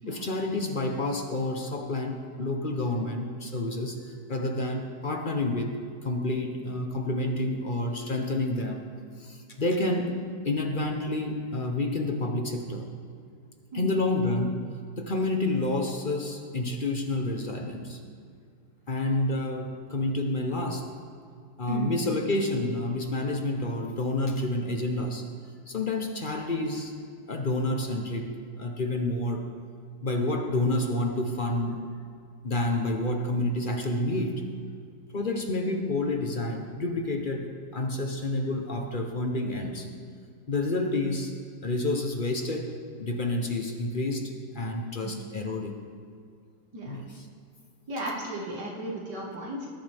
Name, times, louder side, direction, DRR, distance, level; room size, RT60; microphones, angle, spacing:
voice 1, 0.1-5.7 6.0-8.8 9.2-10.2 10.4-12.9 13.7-14.6 15.0-18.0 18.9-20.9 21.6-25.2 25.7-26.9 27.3-28.3 28.6-29.4 30.0-31.8 32.4-34.4 35.1-39.9 40.5-41.3 41.6-45.8 46.8-47.2, left 2 dB, 35° left, 3 dB, 0.9 m, -29 dB
voice 2, 47.9-49.7, right 1 dB, 90° right, -3 dB, 2.4 m, -34 dB
19.5 x 10.5 x 3.5 m, 2.3 s
omnidirectional pair, 1.8 m